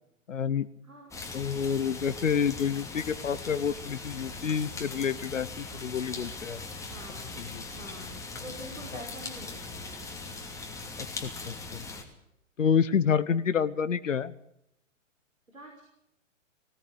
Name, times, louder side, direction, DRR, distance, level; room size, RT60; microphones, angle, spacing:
voice 1, 0.3-0.7 1.3-6.6 7.4-7.6 8.9-9.0 11.0-11.8 12.6-14.3, left 7 dB, 70° left, 16 dB, 1.1 m, -28 dB
sound 1, 1.1-12.0, left 3 dB, 10° left, 2.8 m, -40 dB
voice 2, 6.8-10.0 15.5-15.8, equal, 90° right, 1 dB, 5.7 m, -46 dB
20.0 x 17.5 x 8.2 m, 0.77 s
figure-of-eight pair, 115°, 39 cm